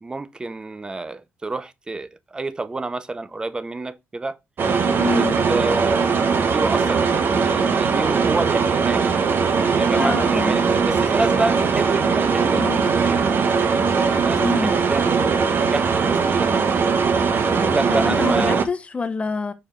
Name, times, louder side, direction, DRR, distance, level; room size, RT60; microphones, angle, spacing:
voice 1, 0.0-4.4 5.1-9.1 9.8-12.7 13.0-13.2 14.1-16.9 17.6-18.6, right 2 dB, 20° right, 0.6 m, -29 dB
Room Tone - bathroom with vent fan on (fan distant), 4.6-18.6, right 5 dB, 50° right, 1.1 m, -20 dB
voice 2, 5.0-5.4 9.9-10.6 12.6-12.8 14.4-14.7 17.9-19.5, left 4 dB, 25° left, 1.1 m, -26 dB
6.1 x 4.9 x 3.6 m
cardioid pair, 115°, 5 cm